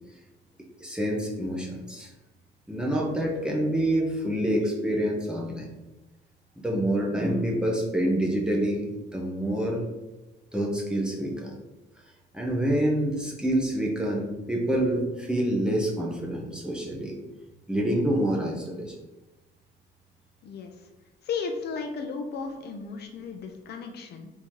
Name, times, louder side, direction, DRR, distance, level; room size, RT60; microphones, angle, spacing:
voice 1, 0.8-2.1 2.7-5.7 6.6-8.9 9.1-9.8 10.5-11.5 12.3-17.1 17.7-18.9, right 1 dB, 5° right, -2 dB, 0.6 m, -27 dB
voice 2, 21.2-24.3, left 5 dB, 55° left, 4 dB, 0.5 m, -34 dB
3.6 x 2.7 x 4.5 m, 1.0 s
cardioid pair, 180°, 20 cm